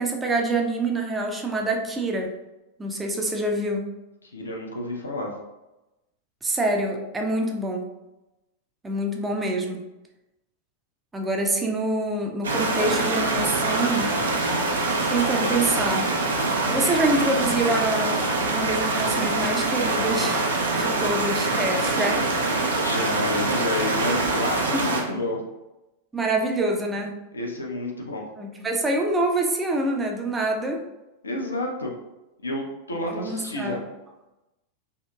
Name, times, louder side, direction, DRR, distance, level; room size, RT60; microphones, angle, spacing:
voice 1, 0.0-2.3 2.8-3.8 6.4-7.9 8.8-9.8 11.1-14.1 15.1-16.1 16.7-20.5 20.7-22.4 24.7-24.8 26.1-27.1 28.4-30.8 33.1-33.8, right 2 dB, 15° right, 1 dB, 0.4 m, -26 dB
voice 2, 4.2-5.3 22.8-25.4 27.3-28.2 31.2-31.9 32.4-33.8, left 2 dB, 75° left, 0 dB, 0.5 m, -30 dB
sound 1, 12.4-25.0, right 2 dB, 70° right, 0.5 m, -24 dB
2.8 x 2.7 x 2.2 m, 0.98 s
figure-of-eight pair, 90°, 0 cm